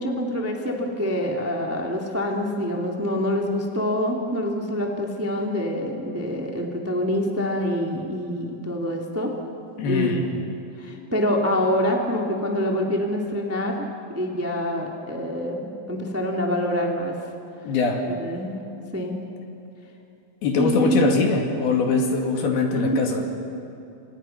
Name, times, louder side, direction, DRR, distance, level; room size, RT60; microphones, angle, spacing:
voice 1, 0.0-9.3 9.8-10.2 10.8-13.9 14.1-17.1 18.0-18.5 18.9-19.2 20.6-21.1 22.8-23.1, equal, 10° right, 0 dB, 0.8 m, -26 dB
voice 2, 9.8-10.3 17.6-18.0 20.4-23.2, left 4 dB, 60° left, 2 dB, 4.0 m, -22 dB
29.5 x 26.5 x 5.9 m, 2.8 s
omnidirectional pair, 5.2 m